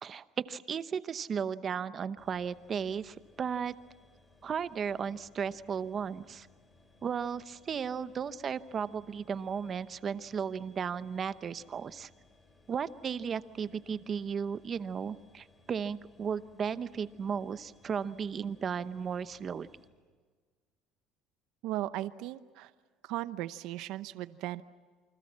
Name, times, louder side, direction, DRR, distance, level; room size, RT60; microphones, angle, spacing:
voice 1, 0.0-3.7 4.4-6.5 7.0-12.1 12.7-19.7, right 7 dB, 30° right, 14 dB, 0.8 m, -35 dB
sound 1, 2.2-19.9, left 2 dB, 15° left, 7.1 m, -63 dB
voice 2, 21.6-22.7 23.0-24.6, right 15 dB, 65° right, 14 dB, 0.8 m, -37 dB
28.5 x 25.0 x 7.4 m, 1.5 s
cardioid pair, 150°, 0 cm